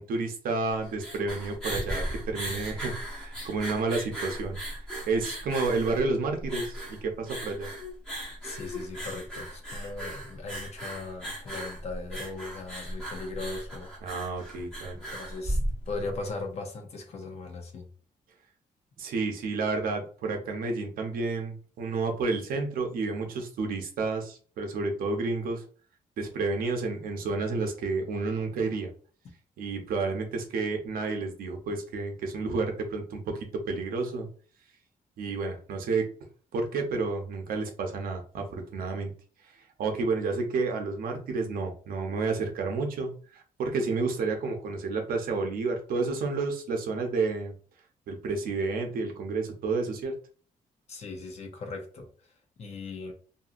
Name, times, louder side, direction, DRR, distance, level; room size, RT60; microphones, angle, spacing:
voice 1, 0.0-4.6 5.1-7.7 14.0-15.0 19.0-25.6 26.2-28.9 29.6-33.4 33.7-34.3 35.2-36.1 36.5-39.1 39.8-47.5 48.1-50.1, right 3 dB, 80° right, 3 dB, 0.7 m, -30 dB
sound 1, 0.7-16.2, equal, 5° left, 0.8 m, -36 dB
voice 2, 8.4-13.9 14.9-15.6 15.9-17.9 50.9-52.1 52.6-53.1, left 3 dB, 45° left, 4 dB, 0.7 m, -38 dB
2.7 x 2.7 x 2.4 m, 0.41 s
wide cardioid pair, 180°, 15 cm